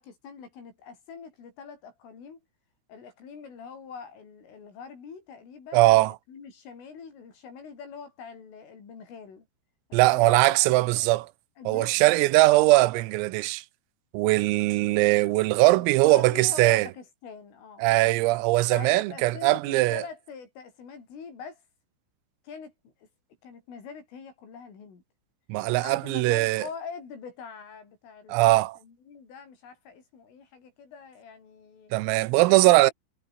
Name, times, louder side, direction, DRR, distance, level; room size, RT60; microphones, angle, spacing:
voice 1, 0.0-2.4 2.9-9.5 9.9-11.1 11.6-12.2 15.6-17.8 18.7-21.6 22.5-23.1 23.4-25.0 25.6-28.4 28.8-31.9 32.5-32.9, left 6 dB, 70° left, 8.7 m, -43 dB
voice 2, 5.7-6.1 9.9-11.3 11.7-13.7 14.1-16.9 17.8-20.0 25.5-26.7 28.3-28.8 31.9-32.9, right 20 dB, 85° right, 3.6 m, -21 dB
omnidirectional pair, 5.9 m